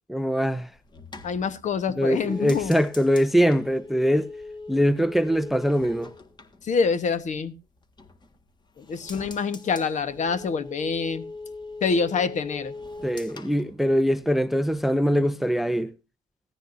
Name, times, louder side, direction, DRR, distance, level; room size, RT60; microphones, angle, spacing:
voice 1, 0.1-0.7 2.0-4.3 4.7-6.1 13.0-15.9, equal, ahead, 0.6 m, -22 dB
sound 1, 0.6-7.4 7.8-8.5 8.8-14.5 14.7-15.2, left 3 dB, 25° left, 1.6 m, -42 dB
voice 2, 1.2-2.7 6.6-7.5 8.8-11.3 11.8-12.7, left 5 dB, 45° left, 1.3 m, -26 dB
16.5 x 13.5 x 2.6 m
cardioid pair, 110°, 17 cm